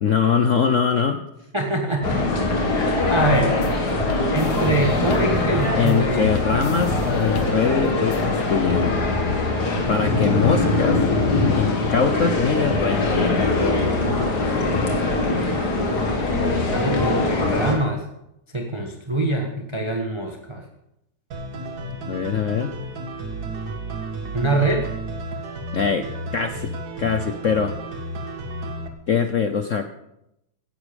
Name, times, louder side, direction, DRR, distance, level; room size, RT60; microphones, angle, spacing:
voice 1, 0.0-1.2 5.8-9.0 9.9-11.0 11.6-13.5 22.1-22.7 25.7-26.1 26.3-26.7 27.0-27.7 29.1-29.9, left 6 dB, 75° left, 8 dB, 0.7 m, -22 dB
voice 2, 1.5-2.2 2.8-3.5 4.3-6.6 15.2-15.6 16.7-18.0 18.5-20.6 24.3-24.9, right 2 dB, 15° right, 2 dB, 1.2 m, -24 dB
sound 1, 2.0-17.7, left 2 dB, 50° left, 2.7 m, -22 dB
sound 2, 3.1-8.4, left 6 dB, 90° left, 1.9 m, -36 dB
sound 3, 21.3-28.9, right 2 dB, 50° right, 1.9 m, -32 dB
16.0 x 11.0 x 5.2 m, 0.83 s
omnidirectional pair, 2.4 m